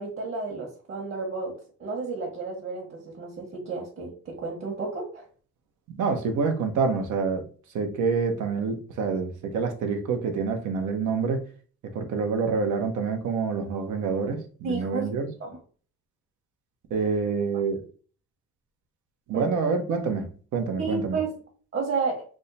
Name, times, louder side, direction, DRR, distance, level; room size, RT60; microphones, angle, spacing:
voice 1, 0.0-1.5 1.8-5.2 14.6-15.1 15.4-15.6 19.3-19.5 20.8-21.3 21.7-22.2, right 4 dB, 45° right, -1 dB, 1.2 m, -31 dB
voice 2, 5.9-7.5 7.7-11.4 11.9-15.3 16.9-17.8 19.3-21.2, right 5 dB, 80° right, 5 dB, 0.9 m, -27 dB
3.6 x 2.2 x 4.0 m, 0.41 s
cardioid pair, 90°, 30 cm